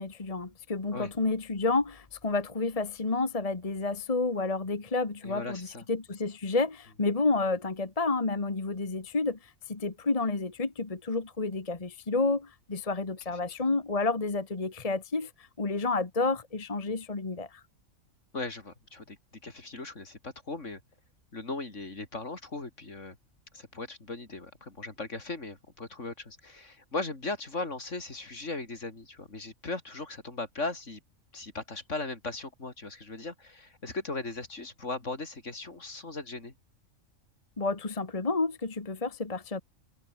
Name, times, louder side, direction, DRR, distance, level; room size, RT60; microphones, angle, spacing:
voice 1, 0.0-17.6 37.6-39.6, left 3 dB, 25° left, 1.5 m, -30 dB
voice 2, 5.2-5.8 18.3-19.2 19.4-20.8 21.3-23.2 23.5-31.0 31.3-36.5, left 3 dB, 60° left, 3.9 m, -38 dB
omnidirectional pair, 1.4 m